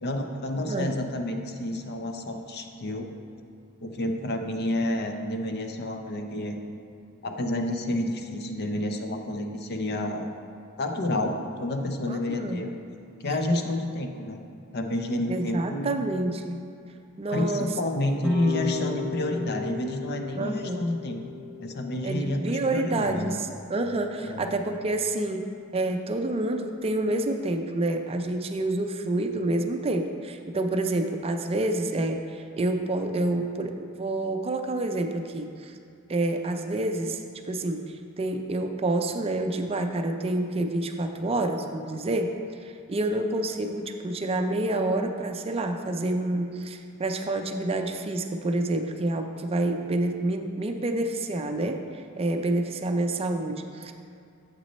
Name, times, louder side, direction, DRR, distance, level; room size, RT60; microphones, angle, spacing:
voice 1, 0.0-3.1 3.8-6.6 7.2-10.3 10.8-12.8 13.2-14.4 14.7-16.0 17.3-21.2 21.6-23.4 24.2-24.4, left 1 dB, 50° left, 5 dB, 0.6 m, -29 dB
voice 2, 0.6-0.9 12.1-12.6 15.3-16.6 17.2-17.7 20.4-20.8 22.0-25.5 25.7-35.7 36.1-42.3 42.6-51.8 52.2-53.9, right 2 dB, 25° right, 5 dB, 0.4 m, -28 dB
sound 1, 18.2-23.3, left 7 dB, ahead, 0.8 m, -37 dB
7.5 x 6.2 x 4.1 m, 2.4 s
head